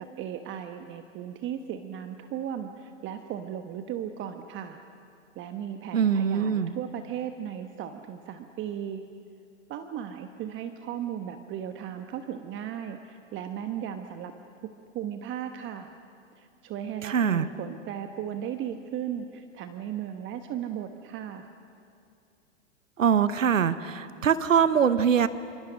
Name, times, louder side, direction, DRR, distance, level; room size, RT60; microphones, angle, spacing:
voice 1, 0.0-4.8 5.3-9.0 9.7-14.3 14.6-15.9 16.4-21.5, right 9 dB, 30° right, 7 dB, 1.2 m, -36 dB
voice 2, 5.9-6.7 17.0-17.5 23.0-25.3, right 7 dB, 85° right, 14 dB, 1.0 m, -23 dB
27.5 x 26.0 x 6.3 m, 2.5 s
hypercardioid pair, 105°, 38 cm